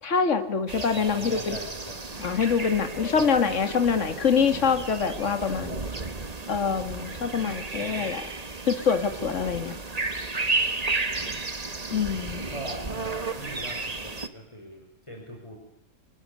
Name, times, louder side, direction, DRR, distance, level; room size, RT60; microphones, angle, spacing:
voice 1, 0.0-1.6 2.2-5.8 6.5-8.2 8.7-9.7 11.9-12.4, left 6 dB, 60° left, 9 dB, 2.3 m, -25 dB
sound 1, 0.7-14.3, right 3 dB, 30° right, 1.5 m, -33 dB
voice 2, 0.9-2.2 3.2-3.4 7.7-8.2 12.5-15.6, equal, 20° left, 1 dB, 5.1 m, -41 dB
26.5 x 21.0 x 9.6 m, 0.78 s
omnidirectional pair, 1.5 m